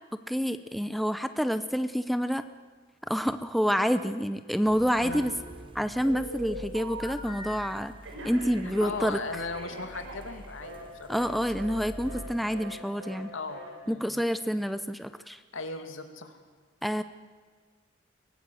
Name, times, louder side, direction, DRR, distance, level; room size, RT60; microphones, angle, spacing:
voice 1, 0.3-2.4 3.1-5.3 5.7-7.9 8.2-9.2 11.1-13.3 13.9-15.4 16.8-17.0, equal, ahead, 10 dB, 0.6 m, -28 dB
sound 1, 4.6-12.7, equal, 25° right, 1.0 m, -46 dB
Telephone, 5.1-5.7 6.0-7.6 8.0-10.8 11.1-11.3 11.6-11.8 12.0-12.3 12.5-12.7 13.0-13.2 13.5-13.7, equal, 90° right, 6.6 m, -42 dB
voice 2, 8.6-11.2 12.1-12.3 13.3-14.2 15.5-16.4, left 3 dB, 85° left, 7 dB, 2.4 m, -38 dB
23.5 x 18.5 x 7.7 m, 1.5 s
head